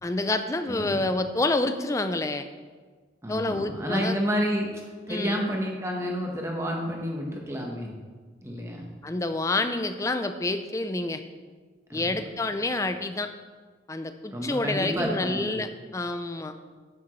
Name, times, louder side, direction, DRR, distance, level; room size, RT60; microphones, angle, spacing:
voice 1, 0.0-2.4 3.3-4.2 5.1-5.5 9.0-11.2 11.9-13.3 13.9-16.5, left 2 dB, 15° left, 9 dB, 0.4 m, -28 dB
voice 2, 3.2-4.7 5.1-7.9 8.4-8.9 11.9-12.2 14.3-15.6, equal, 15° right, 0 dB, 1.1 m, -30 dB
9.7 x 7.1 x 3.1 m, 1.5 s
head